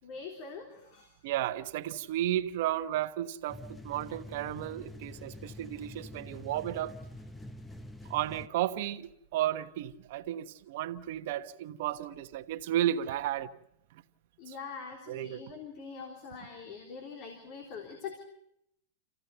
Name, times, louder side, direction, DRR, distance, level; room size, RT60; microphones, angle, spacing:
voice 1, 0.0-1.2 14.4-18.2, left 5 dB, 45° left, 3.4 m, -43 dB
voice 2, 1.2-6.9 8.1-13.5 15.1-15.4, right 12 dB, 60° right, 1.2 m, -33 dB
sound 1, 3.5-8.5, left 1 dB, 10° left, 1.0 m, -46 dB
27.5 x 15.5 x 8.1 m
supercardioid pair, 140°, 0 cm